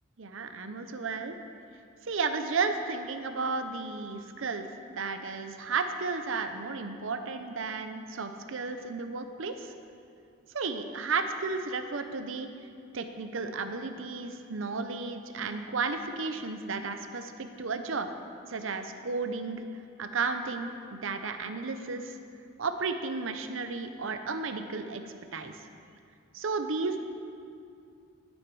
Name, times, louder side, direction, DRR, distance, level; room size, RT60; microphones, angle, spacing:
voice 1, 0.2-1.4 2.1-9.7 10.5-12.5 12.9-18.1 18.5-19.6 20.0-22.1 22.6-25.5 26.3-27.0, right 4 dB, 75° right, 8 dB, 0.7 m, -33 dB
12.5 x 8.0 x 4.8 m, 2.4 s
head